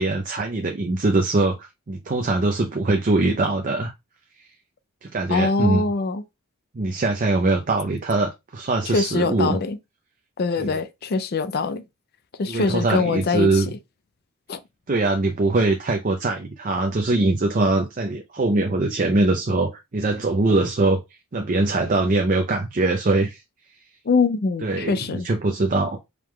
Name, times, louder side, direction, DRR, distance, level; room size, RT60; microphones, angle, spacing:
voice 1, 0.0-3.9 5.0-5.8 6.7-9.6 10.6-10.8 12.5-13.7 14.9-21.0 21.3-23.4 24.6-26.0, right 2 dB, 40° right, 0.5 m, -22 dB
voice 2, 5.3-6.2 8.9-9.8 10.4-11.8 12.4-13.6 14.5-14.6 24.1-25.3, left 4 dB, 45° left, 0.4 m, -23 dB
4.7 x 2.3 x 3.6 m
head